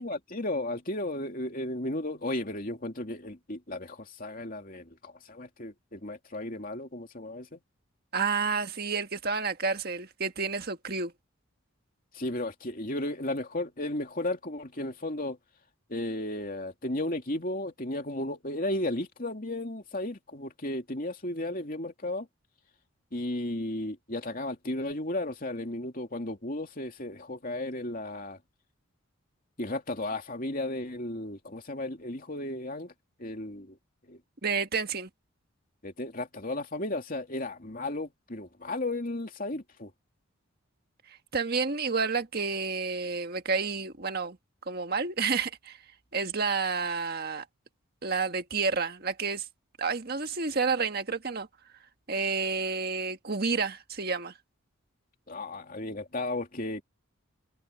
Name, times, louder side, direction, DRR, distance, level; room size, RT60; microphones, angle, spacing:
voice 1, 0.0-7.6 12.1-15.4 15.9-22.3 23.1-28.4 29.6-32.9 33.2-33.8 34.1-34.2 35.8-39.9 55.3-56.8, left 1 dB, 40° left, 2.9 m, -34 dB
voice 2, 8.1-11.1 34.4-35.1 41.3-44.4 44.7-45.8 46.1-47.4 48.0-49.4 49.8-51.5 52.1-54.3, right 4 dB, 45° right, 1.7 m, -30 dB
head